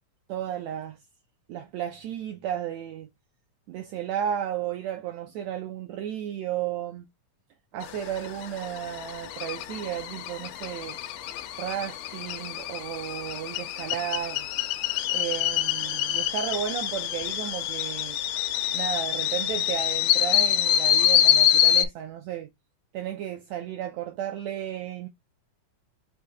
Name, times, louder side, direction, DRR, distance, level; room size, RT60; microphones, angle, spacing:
voice 1, 0.3-1.0 1.5-3.1 3.7-7.1 7.7-11.0 11.6-14.5 15.1-18.2 18.7-22.5 22.9-25.1, right 10 dB, 85° right, 1.6 m, -33 dB
sound 1, 7.8-21.9, left 10 dB, 85° left, 2.3 m, -26 dB
5.8 x 2.7 x 3.4 m
omnidirectional pair, 3.7 m